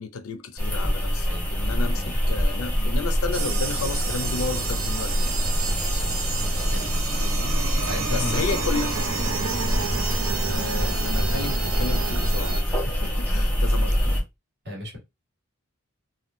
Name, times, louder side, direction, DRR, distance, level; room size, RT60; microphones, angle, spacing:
voice 1, 0.0-5.4 7.2-7.6 8.1-8.9 10.5-14.1, left 4 dB, 80° left, 0.4 m, -32 dB
sound 1, 0.6-14.2, equal, 10° left, 1.0 m, -25 dB
sound 2, 3.3-12.6, right 4 dB, 70° right, 0.7 m, -30 dB
voice 2, 7.9-8.6 14.6-15.0, left 1 dB, 50° right, 1.7 m, -34 dB
3.6 x 2.2 x 2.5 m
head